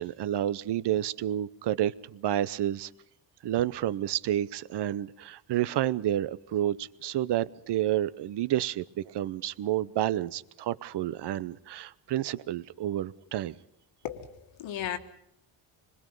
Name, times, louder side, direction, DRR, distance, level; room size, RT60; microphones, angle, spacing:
voice 1, 0.0-2.9 3.4-13.6, right 12 dB, 60° right, 0.8 m, -30 dB
voice 2, 14.0-15.0, left 10 dB, 75° left, 1.9 m, -35 dB
26.5 x 21.0 x 5.4 m
cardioid pair, 95°, 46 cm